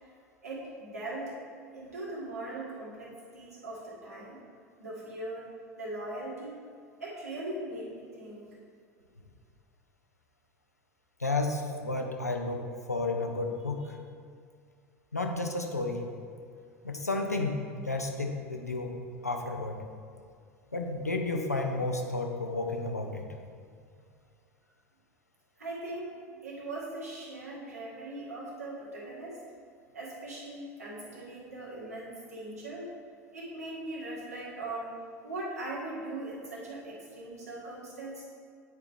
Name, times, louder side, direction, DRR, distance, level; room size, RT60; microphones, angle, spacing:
voice 1, 0.4-1.3 1.7-4.4 4.8-5.5 5.8-6.6 7.0-8.5 25.6-29.4 29.9-32.9 33.3-34.9 35.2-38.2, right 2 dB, 75° right, -6 dB, 1.8 m, -40 dB
voice 2, 11.2-13.9 15.1-16.0 16.8-18.9 19.2-19.8 20.7-23.3, left 2 dB, 85° left, 3 dB, 0.7 m, -32 dB
9.5 x 4.7 x 3.5 m, 2.2 s
figure-of-eight pair, 75°, 8 cm